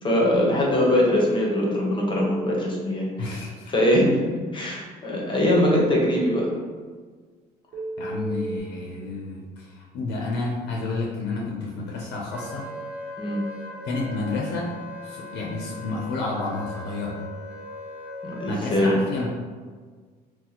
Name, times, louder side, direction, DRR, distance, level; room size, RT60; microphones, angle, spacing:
voice 1, 0.0-3.4 3.7-6.5 13.2-13.4 18.2-19.0, left 1 dB, 30° left, -3 dB, 0.8 m, -22 dB
Telephone, 2.1-2.6 5.5-6.5 7.7-8.6, right 2 dB, 70° right, 0.9 m, -32 dB
voice 2, 3.2-3.7 8.0-12.7 13.9-14.7 15.0-17.2 18.4-19.3, left 3 dB, 85° left, -2 dB, 0.5 m, -30 dB
Wind instrument woodwind instrument, 12.3-18.5, left 2 dB, 5° right, 0.8 m, -39 dB
2.8 x 2.1 x 4.0 m, 1.5 s
cardioid pair, 110°, 17 cm